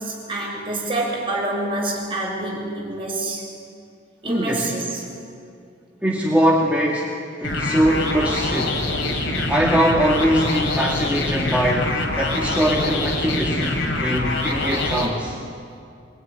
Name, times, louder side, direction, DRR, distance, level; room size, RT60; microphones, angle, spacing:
voice 1, 0.0-3.5 4.2-5.1, right 2 dB, 30° right, -2 dB, 6.9 m, -27 dB
voice 2, 4.3-4.7 6.0-8.8 9.5-15.4, equal, 10° right, -3 dB, 2.0 m, -22 dB
sound 1, 7.4-15.1, left 2 dB, 90° left, 4.7 m, -24 dB
24.5 x 22.5 x 10.0 m, 2.4 s
head